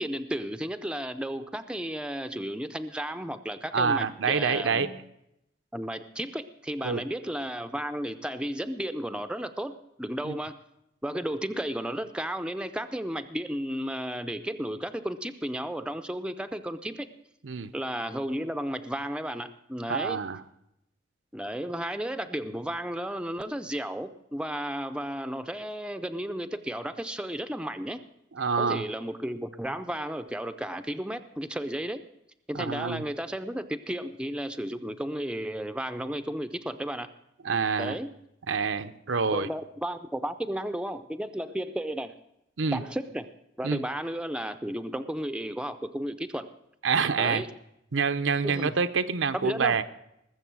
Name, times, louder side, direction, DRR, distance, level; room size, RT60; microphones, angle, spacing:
voice 1, 0.0-5.0 5.7-10.6 11.0-17.1 17.7-20.2 21.3-28.0 28.6-32.1 32.5-37.1 37.8-38.1 39.3-42.2 42.7-43.3 43.6-46.5 47.2-47.5 48.4-48.7 49.3-49.8, right 1 dB, 5° right, 9 dB, 0.5 m, -33 dB
voice 2, 3.7-4.9 6.8-7.0 10.2-10.3 17.4-17.7 19.9-20.4 28.3-28.8 32.5-33.0 37.4-38.0 38.5-39.5 42.6-42.8 43.6-43.8 46.8-47.4 47.9-49.8, right 5 dB, 85° right, 10 dB, 0.7 m, -27 dB
20.5 x 7.2 x 6.1 m, 0.82 s
head